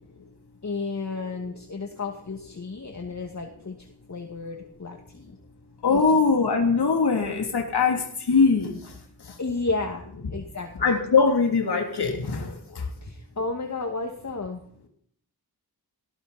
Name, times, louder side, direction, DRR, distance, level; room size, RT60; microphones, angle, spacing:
voice 1, 0.6-5.4 5.9-6.2 9.4-10.9 13.0-14.6, left 3 dB, 45° left, 2 dB, 2.3 m, -33 dB
voice 2, 5.8-9.4 10.8-12.9, left 4 dB, 85° left, 2 dB, 3.4 m, -22 dB
19.5 x 16.5 x 4.4 m, 0.64 s
wide cardioid pair, 100°, 38 cm